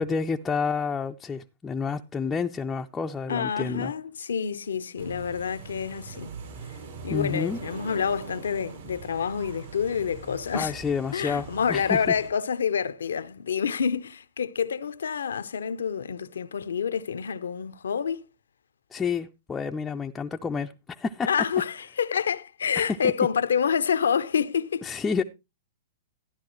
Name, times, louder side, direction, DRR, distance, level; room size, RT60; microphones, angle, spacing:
voice 1, 0.0-3.9 7.1-7.6 10.5-12.0 18.9-21.3 24.8-25.2, left 5 dB, 15° left, 0.5 m, -29 dB
voice 2, 3.3-6.4 7.0-10.7 11.1-18.2 21.2-24.9, left 7 dB, 80° left, 0.6 m, -28 dB
sound 1, 5.0-12.3, right 4 dB, 70° right, 5.0 m, -42 dB
13.0 x 11.0 x 3.1 m
hypercardioid pair, 120°, 0 cm